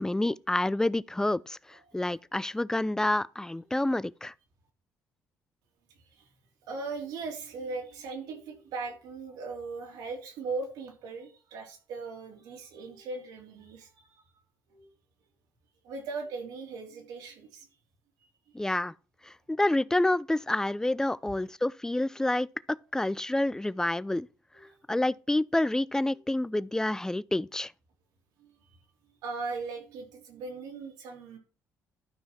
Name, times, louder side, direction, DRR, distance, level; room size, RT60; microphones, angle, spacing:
voice 1, 0.0-4.3 18.5-18.9 19.2-22.5 22.9-24.3 24.9-27.7, left 1 dB, 10° left, 0.4 m, -28 dB
voice 2, 5.9-6.3 6.7-14.2 14.7-14.9 15.8-17.7 18.2-18.3 18.6-18.7 24.5-24.8 28.4-31.4, right 4 dB, 85° right, 3.3 m, -39 dB
12.0 x 5.6 x 4.4 m
cardioid pair, 80°, 7 cm